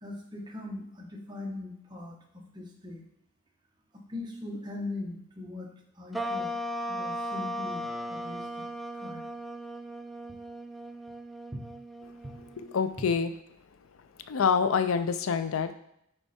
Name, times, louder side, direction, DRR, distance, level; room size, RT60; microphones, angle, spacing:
voice 1, 0.0-3.0 3.9-6.5 6.9-8.6 8.9-9.3 11.5-11.6 12.2-12.3, left 2 dB, 20° right, 0 dB, 1.1 m, -40 dB
sound 1, 6.1-12.8, equal, ahead, 0.3 m, -37 dB
voice 2, 12.7-13.3 14.3-15.7, left 6 dB, 90° left, 10 dB, 0.5 m, -26 dB
9.0 x 3.3 x 4.3 m, 0.75 s
head